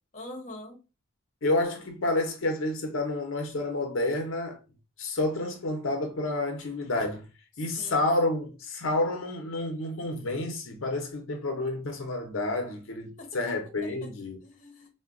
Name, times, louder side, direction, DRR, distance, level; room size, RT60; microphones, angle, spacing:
voice 1, 0.1-0.8 7.6-8.2 13.2-14.1 14.4-14.9, left 2 dB, 40° left, 0.8 m, -44 dB
voice 2, 1.4-4.6 5.0-7.3 7.6-14.4, left 2 dB, 80° left, 0.6 m, -29 dB
3.7 x 2.1 x 2.4 m
head